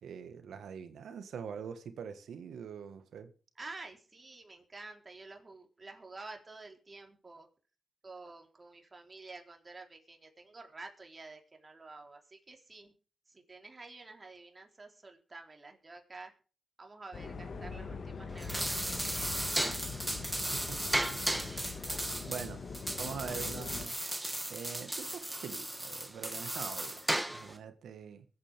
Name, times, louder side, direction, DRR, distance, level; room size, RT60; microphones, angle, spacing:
voice 1, 0.0-3.3 20.5-21.6 22.3-22.6 23.0-24.0 24.5-28.3, right 7 dB, 85° right, 1.6 m, -44 dB
voice 2, 3.6-7.5 8.0-12.9 13.3-16.3 16.8-19.8, right 3 dB, 35° right, 3.8 m, -50 dB
sound 1, 17.1-23.9, left 4 dB, 65° left, 1.8 m, -42 dB
sound 2, 18.3-27.6, right 1 dB, 10° right, 1.9 m, -35 dB
23.0 x 8.8 x 3.6 m
cardioid pair, 55°, 0 cm